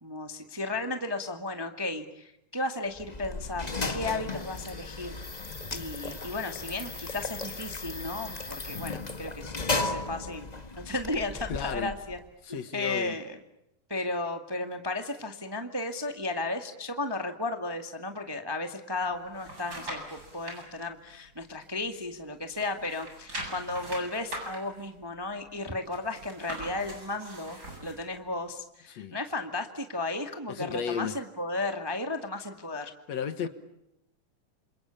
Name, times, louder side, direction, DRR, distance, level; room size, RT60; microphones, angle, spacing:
voice 1, 0.0-5.4 5.7-10.5 10.8-12.2 12.5-13.4 13.9-32.9, left 2 dB, 10° right, 1.3 m, -34 dB
sound 1, 2.9-12.3, left 3 dB, 35° left, 0.6 m, -35 dB
voice 2, 11.5-11.9 12.4-13.2 28.9-29.2 30.5-31.2 33.1-33.5, left 7 dB, 65° left, 2.4 m, -33 dB
sound 2, 19.0-20.6 21.1-22.2 22.5-28.0 28.5-28.6, right 1 dB, 30° right, 8.5 m, -41 dB
28.0 x 27.5 x 7.1 m
omnidirectional pair, 3.6 m